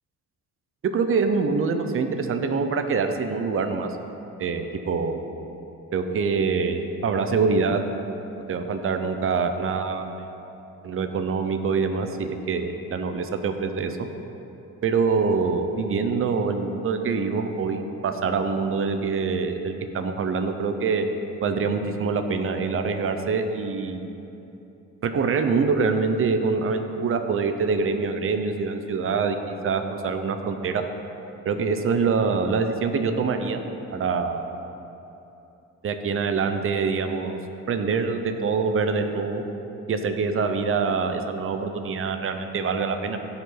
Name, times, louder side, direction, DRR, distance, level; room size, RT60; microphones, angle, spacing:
voice 1, 0.8-3.9 4.4-5.3 5.9-7.8 8.5-10.1 10.8-14.0 14.8-21.0 21.4-24.1 25.0-29.4 29.6-30.8 31.4-33.6 33.9-34.5 35.8-37.4 37.7-39.4 39.9-43.2, right 5 dB, 45° right, 7 dB, 0.8 m, -25 dB
16.5 x 5.7 x 4.0 m, 2.9 s
cardioid pair, 90°, 30 cm